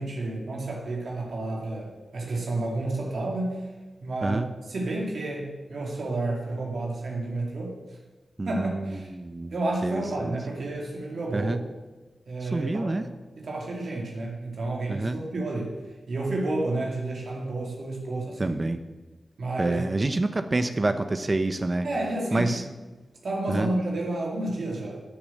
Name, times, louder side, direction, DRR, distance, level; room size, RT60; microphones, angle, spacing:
voice 1, 0.0-3.6 4.0-7.8 8.5-9.1 9.5-11.5 12.3-12.9 13.4-15.8 16.1-18.5 19.4-19.9 21.8-22.5 23.2-25.0, right 2 dB, 75° right, -1 dB, 2.5 m, -30 dB
voice 2, 8.4-9.5 9.8-10.3 11.3-11.6 12.4-13.1 14.9-15.2 18.4-18.8 19.6-21.9 22.3-22.6 23.5-23.7, right 2 dB, 40° right, 9 dB, 0.9 m, -27 dB
12.5 x 7.2 x 7.7 m, 1.2 s
cardioid pair, 45°, 0 cm